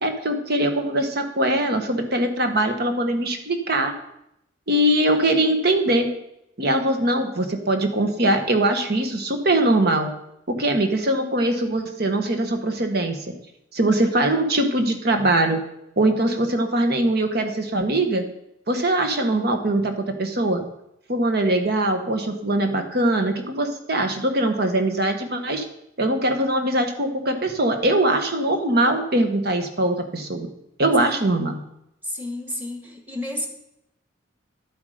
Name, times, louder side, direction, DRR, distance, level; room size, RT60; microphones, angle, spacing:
voice 1, 0.0-3.9 4.7-6.1 6.6-10.1 10.5-13.2 13.7-15.6 16.0-18.3 18.7-20.6 21.1-25.6 26.0-30.5 30.8-31.6, right 1 dB, 55° right, 6 dB, 1.4 m, -22 dB
voice 2, 32.0-33.5, left 1 dB, 10° right, 3 dB, 1.7 m, -31 dB
11.5 x 8.2 x 5.1 m, 0.80 s
head